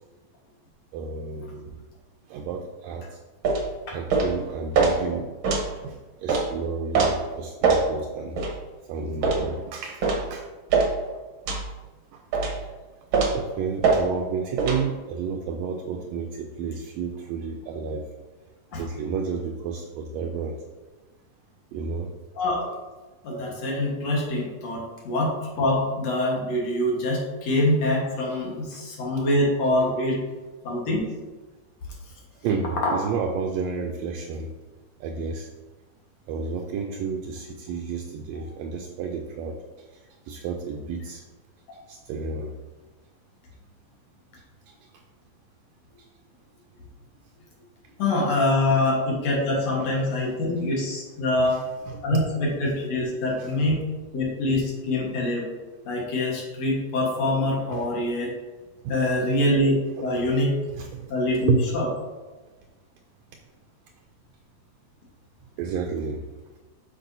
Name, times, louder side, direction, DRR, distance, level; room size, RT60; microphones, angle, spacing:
voice 1, 0.9-1.8 2.3-3.0 3.9-5.3 5.8-6.0 6.2-8.4 8.9-10.5 12.1-12.2 13.3-18.0 18.8-20.5 21.7-22.1 28.7-28.8 32.4-34.5 35.0-35.5 36.3-39.6 40.3-41.2 41.9-42.5 48.3-48.4 48.7-48.8 49.8-49.9 51.4-52.2 53.4-53.6 57.7-57.9 58.8-59.3 60.0-60.3 60.7-61.7 65.6-66.2, right 5 dB, 80° right, 3 dB, 1.7 m, -31 dB
sound 1, 3.4-3.6 4.1-4.3 4.7-4.9 5.4-5.7 6.3-6.4 6.9-7.1 7.6-7.8 8.4-8.5 9.2-9.4 10.0-10.2 10.7-10.9 11.5-11.7 12.3-12.6 13.1-13.4 13.8-14.0 14.6-14.8, right 4 dB, 55° right, 1.5 m, -21 dB
voice 2, 23.2-30.2 30.6-31.0 48.0-51.6 52.0-53.8 54.1-55.5 55.9-58.3 58.9-60.5 61.1-61.9, left 1 dB, 65° left, -2 dB, 2.4 m, -24 dB
8.0 x 6.0 x 2.6 m, 1.3 s
omnidirectional pair, 3.4 m